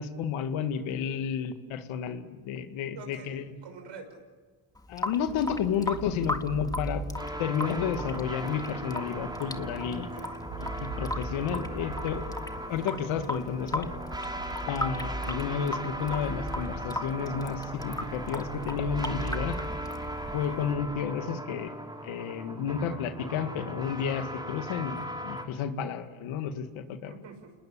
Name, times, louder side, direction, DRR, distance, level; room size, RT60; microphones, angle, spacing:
voice 1, 0.0-3.5 4.9-7.0 7.4-10.1 10.6-12.2 12.7-13.9 14.7-19.6 20.3-21.7 22.0-27.1, left 7 dB, 80° left, 8 dB, 2.2 m, -31 dB
voice 2, 2.9-4.2 9.9-10.4 27.0-27.5, right 5 dB, 65° right, 6 dB, 6.1 m, -46 dB
Water tap faucet / Sink (filling or washing) / Drip, 4.7-20.7, left 1 dB, 10° left, 1.9 m, -38 dB
sound 1, 5.3-21.0, right 3 dB, 90° right, 4.8 m, -40 dB
sound 2, 7.2-25.4, equal, 10° right, 5.6 m, -39 dB
28.5 x 20.5 x 8.6 m, 1.4 s
supercardioid pair, 70°, 48 cm